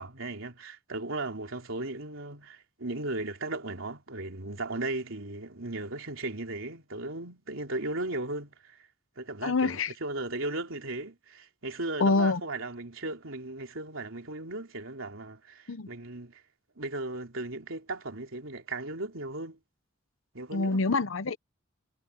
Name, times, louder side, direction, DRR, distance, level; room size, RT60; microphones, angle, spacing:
voice 1, 0.0-8.8 9.2-16.4 16.8-19.6 20.3-20.8, right 2 dB, 80° right, 3.3 m, -36 dB
voice 2, 9.4-9.9 12.0-12.4 15.7-15.9 20.5-21.4, left 3 dB, 80° left, 0.8 m, -26 dB
head